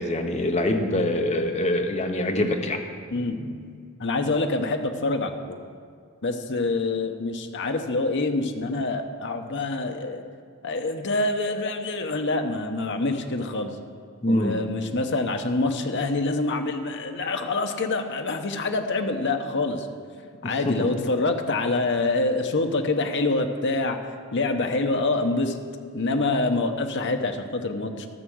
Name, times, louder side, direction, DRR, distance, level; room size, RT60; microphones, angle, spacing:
voice 1, 0.0-2.8 14.2-14.6 20.4-20.9, left 1 dB, 30° left, 4 dB, 1.0 m, -24 dB
voice 2, 3.1-5.6 6.2-10.2 10.6-13.7 14.3-19.9 20.4-24.0 24.3-25.6 25.9-28.1, left 2 dB, 55° left, 5 dB, 1.0 m, -26 dB
13.5 x 6.8 x 6.3 m, 2.2 s
head